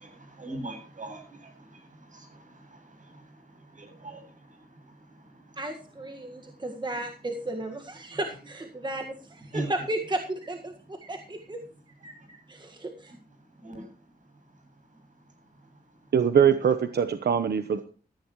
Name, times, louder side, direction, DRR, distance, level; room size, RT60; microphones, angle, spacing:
voice 1, 0.0-3.2 3.7-4.6 5.5-5.6 8.1-8.2 9.5-9.7 13.6-13.8, right 2 dB, 50° right, 4 dB, 8.0 m, -40 dB
voice 2, 5.5-11.6 12.0-13.1, right 1 dB, 25° right, 3 dB, 1.7 m, -34 dB
voice 3, 16.1-17.8, right 7 dB, 80° right, 10 dB, 1.0 m, -22 dB
16.0 x 14.5 x 3.1 m, 0.39 s
wide cardioid pair, 110°, 17 cm